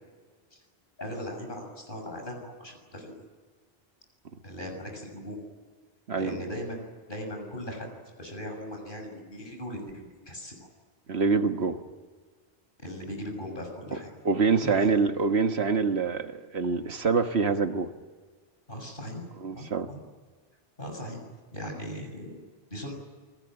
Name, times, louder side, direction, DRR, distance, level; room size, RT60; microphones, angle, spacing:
voice 1, 1.0-3.2 4.4-5.4 6.1-7.9 8.2-10.7 12.8-14.1 14.6-14.9 18.7-19.2 19.5-20.0 20.8-21.2 21.5-22.4 22.7-22.9, equal, 55° left, 3 dB, 6.9 m, -38 dB
voice 2, 11.1-11.8 14.2-17.9 19.4-19.9, right 4 dB, 85° right, 7 dB, 1.7 m, -25 dB
28.5 x 20.5 x 9.0 m, 1.5 s
omnidirectional pair, 1.1 m